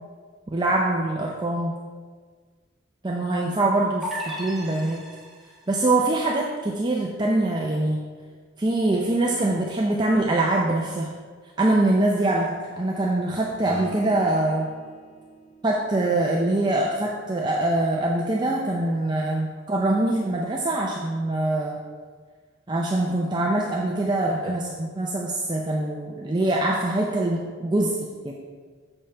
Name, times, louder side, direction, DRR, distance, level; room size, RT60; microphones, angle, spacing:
voice 1, 0.5-1.8 3.0-5.0 5.7-8.0 8.6-11.1 11.6-14.7 15.6-21.8 22.7-27.9, right 2 dB, 20° right, -1 dB, 0.5 m, -24 dB
sound 1, 4.0-5.6, left 1 dB, ahead, 0.9 m, -35 dB
Acoustic guitar / Strum, 13.6-18.4, right 2 dB, 35° left, 1.7 m, -43 dB
7.0 x 5.4 x 4.4 m, 1.5 s
head